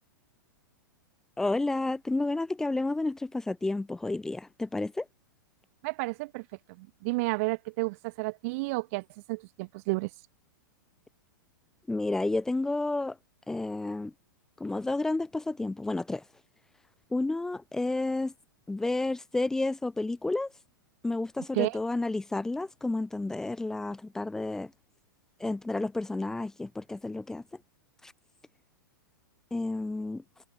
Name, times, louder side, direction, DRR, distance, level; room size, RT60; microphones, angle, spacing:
voice 1, 1.4-5.1 11.9-13.2 13.5-14.1 14.6-16.2 17.1-18.3 18.7-20.5 21.0-24.7 25.4-27.4 28.0-28.1 29.5-30.2, left 2 dB, 5° left, 0.3 m, -31 dB
voice 2, 5.8-6.4 6.8-10.1 21.5-21.8, right 25 dB, 45° right, 1.4 m, -31 dB
figure-of-eight pair, 100°, 11 cm